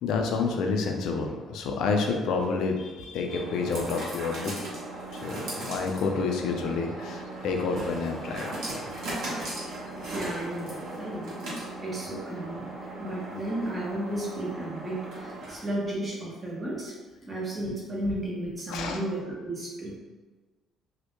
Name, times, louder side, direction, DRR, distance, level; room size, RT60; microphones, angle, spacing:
voice 1, 0.0-4.6 5.1-8.8 18.7-19.0, left 4 dB, 75° left, 3 dB, 0.3 m, -29 dB
sound 1, 1.9-15.8, right 2 dB, 70° right, 0.8 m, -38 dB
Laughter, 6.0-13.5, right 1 dB, 10° left, 0.8 m, -47 dB
voice 2, 10.1-11.3 11.8-16.9 17.3-19.9, right 1 dB, 20° right, -5 dB, 0.7 m, -33 dB
2.1 x 2.0 x 2.9 m, 1.3 s
cardioid pair, 135°, 0 cm